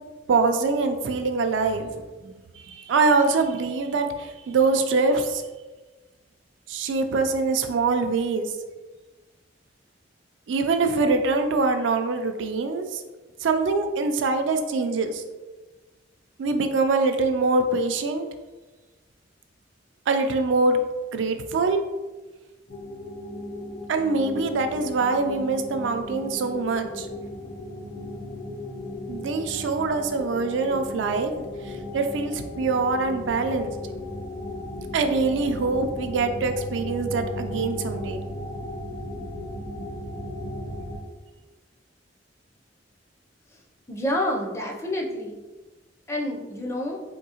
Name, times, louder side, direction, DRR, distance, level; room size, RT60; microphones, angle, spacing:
voice 1, 0.3-1.9 2.2-2.3 2.7-5.4 6.7-8.5 10.5-13.0 13.4-15.2 16.4-18.3 20.1-20.8 21.1-21.8 23.9-27.1 29.1-31.5 31.9-33.7 34.9-38.2, right 3 dB, 85° right, 6 dB, 0.4 m, -24 dB
sound 1, 22.7-41.0, left 1 dB, 70° left, 0.7 m, -36 dB
voice 2, 43.9-45.4 46.1-47.0, left 1 dB, 15° left, 0 dB, 0.4 m, -28 dB
3.6 x 2.7 x 2.8 m, 1.2 s
head